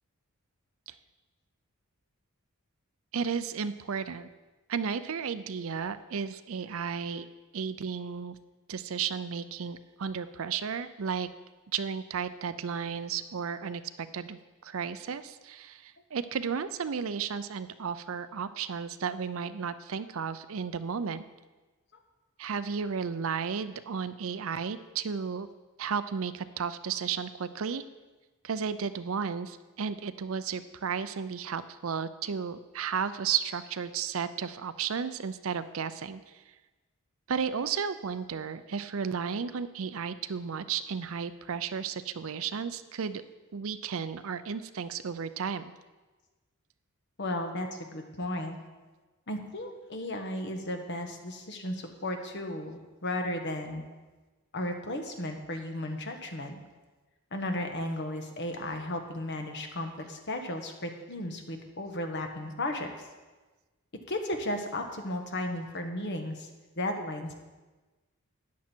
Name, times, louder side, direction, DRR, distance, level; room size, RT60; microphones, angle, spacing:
voice 1, 3.1-4.3 4.7-7.3 7.5-8.3 8.7-11.3 11.7-21.2 22.4-25.5 25.8-27.8 28.4-36.2 37.3-43.2 43.5-45.7, right 6 dB, 65° right, 13 dB, 0.5 m, -33 dB
voice 2, 47.2-48.6 49.3-53.8 54.5-56.6 57.3-62.9 64.1-66.5 66.8-67.3, left 1 dB, 50° left, 4 dB, 1.3 m, -34 dB
13.5 x 9.4 x 4.5 m, 1.2 s
head